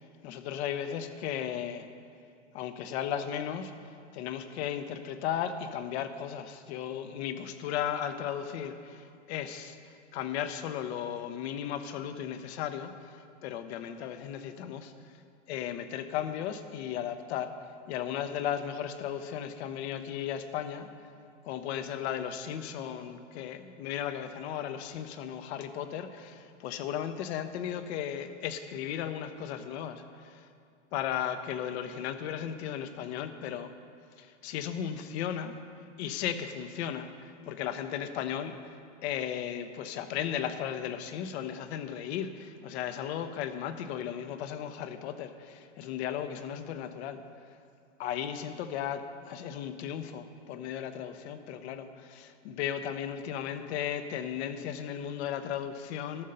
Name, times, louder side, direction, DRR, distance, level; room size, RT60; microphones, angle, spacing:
voice 1, 0.2-1.9 2.5-9.8 10.1-14.9 15.5-17.5 17.9-20.9 21.4-30.5 30.9-33.7 34.2-35.6 36.0-38.7 39.0-47.2 48.0-56.2, left 9 dB, 60° left, 10 dB, 0.9 m, -35 dB
13.0 x 6.4 x 5.5 m, 2.4 s
hypercardioid pair, 110°, 37 cm